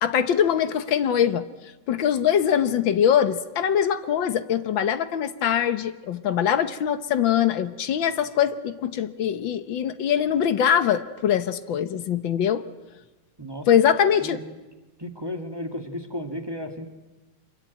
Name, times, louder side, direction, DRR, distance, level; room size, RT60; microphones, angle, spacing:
voice 1, 0.0-1.5 1.9-12.6 13.7-14.4, left 9 dB, 80° left, 12 dB, 1.8 m, -22 dB
voice 2, 15.0-16.9, left 1 dB, 15° right, 5 dB, 1.7 m, -33 dB
25.0 x 23.0 x 9.2 m, 1.1 s
omnidirectional pair, 2.1 m